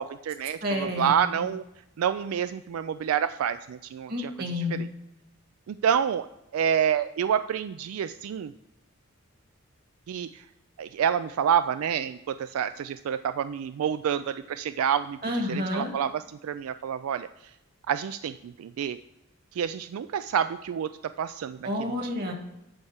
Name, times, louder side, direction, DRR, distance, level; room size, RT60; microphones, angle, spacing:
voice 1, 0.0-1.6 2.0-4.9 5.7-6.3 6.5-8.5 10.1-10.4 10.8-17.3 17.9-19.0 19.5-21.7, right 8 dB, 80° right, 12 dB, 0.3 m, -28 dB
voice 2, 0.6-1.5 4.1-4.8 15.2-15.9 21.6-22.3, left 1 dB, 45° right, 2 dB, 1.9 m, -30 dB
11.5 x 4.3 x 6.5 m, 0.89 s
head